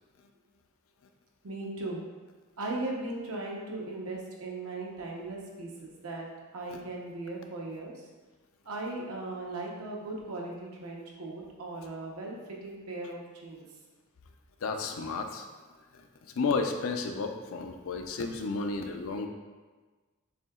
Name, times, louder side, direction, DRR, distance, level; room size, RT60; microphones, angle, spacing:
voice 1, 1.4-2.0 2.6-6.3 6.5-8.1 8.6-12.3 12.6-13.6, right 2 dB, 75° right, -2 dB, 0.8 m, -38 dB
voice 2, 14.6-15.5 15.9-19.3, left 4 dB, 65° left, 5 dB, 0.4 m, -32 dB
6.9 x 2.8 x 2.3 m, 1.3 s
head